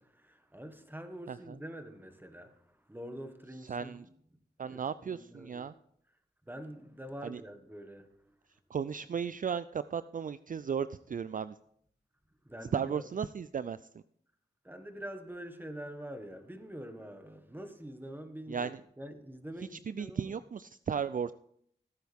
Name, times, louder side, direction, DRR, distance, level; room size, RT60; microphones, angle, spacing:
voice 1, 0.0-2.5 2.9-4.1 4.6-5.7 6.5-8.1 12.4-13.1 14.6-20.3, equal, 10° right, 1.6 m, -45 dB
voice 2, 3.6-4.1 4.6-5.7 7.2-7.4 8.7-11.6 12.7-13.8 18.5-18.8 19.7-21.3, right 7 dB, 50° right, 0.4 m, -35 dB
16.0 x 9.2 x 3.5 m
cardioid pair, 50°, 18 cm